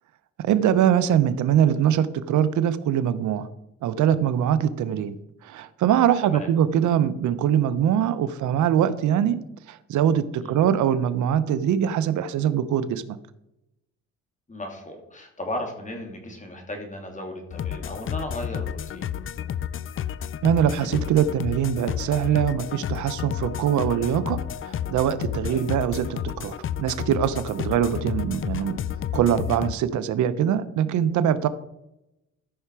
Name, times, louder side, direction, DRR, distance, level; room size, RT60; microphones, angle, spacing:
voice 1, 0.4-3.5 3.8-5.1 5.4-9.4 9.7-13.2 20.4-24.4 24.6-28.8 29.1-31.5, right 9 dB, 75° right, 14 dB, 0.8 m, -23 dB
voice 2, 14.5-19.1 25.5-25.7 27.7-27.8, left 1 dB, 25° left, 3 dB, 2.8 m, -35 dB
sound 1, 17.5-29.7, left 9 dB, 45° left, 0.5 m, -31 dB
14.0 x 5.6 x 4.8 m, 0.87 s
cardioid pair, 90°, 30 cm